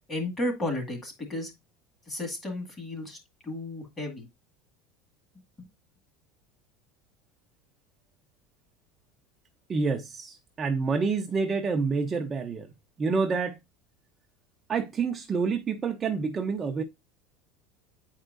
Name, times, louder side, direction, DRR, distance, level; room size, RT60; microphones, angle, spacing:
voice 1, 0.1-1.5 2.1-3.2 3.4-4.3 5.6-5.7, left 1 dB, 20° left, 2.0 m, -33 dB
voice 2, 9.7-12.7 13.0-13.6 14.7-16.8, right 4 dB, 20° right, 0.6 m, -28 dB
8.8 x 4.5 x 2.6 m
cardioid pair, 150°, 0 cm